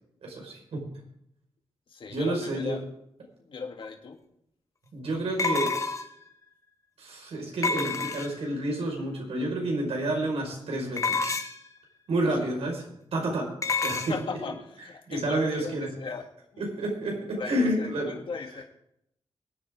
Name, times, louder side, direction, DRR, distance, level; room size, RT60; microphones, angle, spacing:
voice 1, 0.2-0.9 2.1-2.8 4.9-5.8 7.0-11.3 12.1-13.5 13.8-14.2 15.1-15.9 16.6-18.1, right 1 dB, 75° right, 1 dB, 5.2 m, -29 dB
voice 2, 1.9-2.8 3.4-4.2 13.9-16.3 16.5-16.6 17.3-18.6, left 5 dB, 55° left, 3 dB, 1.9 m, -37 dB
sound 1, 3.8-3.9 5.4-6.2 7.6-8.5 11.0-11.7 13.6-14.1, left 4 dB, 30° left, 1.3 m, -28 dB
23.5 x 8.9 x 3.7 m, 0.76 s
wide cardioid pair, 105°, 10 cm